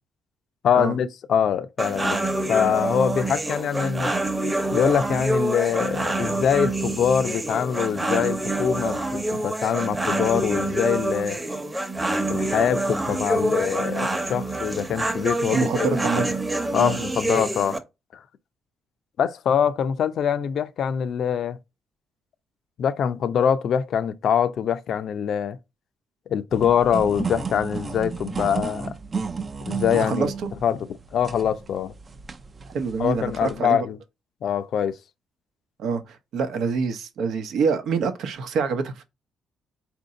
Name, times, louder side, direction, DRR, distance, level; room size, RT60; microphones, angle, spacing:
voice 1, 0.6-2.2 2.5-4.1 4.7-11.4 12.3-16.0 16.7-17.8 18.1-18.2 19.2-21.6 22.8-25.6 26.3-29.0 29.7-30.3 30.6-30.8 31.1-31.9 33.0-34.0 34.4-35.0, left 8 dB, 65° left, 0.5 m, -24 dB
sound 1, 1.8-17.8, right 2 dB, 15° right, 0.9 m, -26 dB
voice 2, 15.5-16.2 16.8-17.0 30.0-30.5 32.7-33.8 35.8-39.0, right 5 dB, 75° right, 0.8 m, -26 dB
sound 2, 26.5-33.6, right 5 dB, 35° right, 0.5 m, -33 dB
4.3 x 2.6 x 3.8 m
cardioid pair, 90°, 0 cm